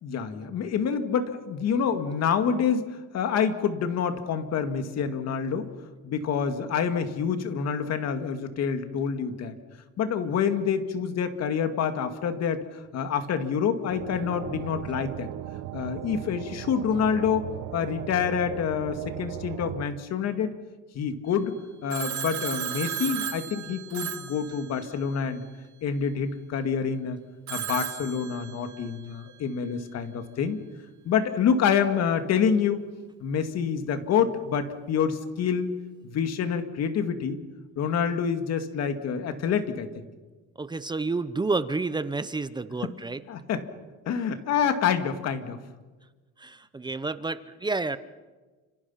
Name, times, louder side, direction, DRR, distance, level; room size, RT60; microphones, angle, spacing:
voice 1, 0.0-5.7 6.0-9.6 10.0-15.3 15.7-20.5 20.9-25.4 25.8-27.2 27.5-30.6 31.0-32.8 33.2-35.7 36.0-37.4 37.8-40.0 42.8-42.9 43.3-43.7 44.1-45.6, left 7 dB, 55° left, 7 dB, 2.3 m, -27 dB
sound 1, 13.9-19.8, right 14 dB, 85° right, 1.0 m, -37 dB
Telephone, 21.9-25.2 27.5-29.0, right 10 dB, 60° right, 2.4 m, -35 dB
voice 2, 40.6-43.2 46.4-48.0, right 3 dB, 15° right, 13 dB, 0.8 m, -30 dB
29.5 x 27.0 x 5.8 m, 1.3 s
cardioid pair, 145°, 31 cm